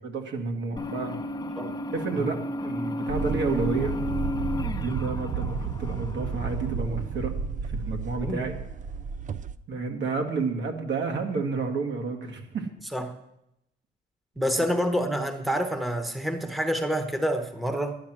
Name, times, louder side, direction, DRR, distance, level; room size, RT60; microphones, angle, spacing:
voice 1, 0.0-1.2 1.9-3.9 4.6-7.3 7.6-8.6 9.7-12.7, right 4 dB, 65° right, 2 dB, 2.0 m, -30 dB
sound 1, 0.8-7.1, left 2 dB, 20° left, 0.8 m, -34 dB
sound 2, 3.1-9.6, right 6 dB, 40° right, 0.5 m, -32 dB
voice 2, 14.4-18.0, equal, ahead, 7 dB, 1.2 m, -27 dB
11.0 x 10.0 x 6.1 m, 0.84 s
cardioid pair, 90°, 20 cm